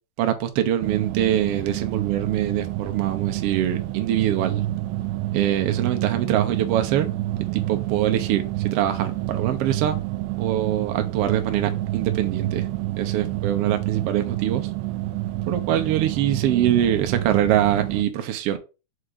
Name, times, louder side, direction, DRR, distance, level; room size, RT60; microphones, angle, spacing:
voice 1, 0.2-4.6 5.3-7.1 7.5-10.0 10.4-12.7 13.0-14.7 15.4-18.6, right 11 dB, 70° right, 1.4 m, -24 dB
sound 1, 0.8-18.0, right 16 dB, 90° right, 1.5 m, -28 dB
4.9 x 4.3 x 5.0 m
omnidirectional pair, 3.8 m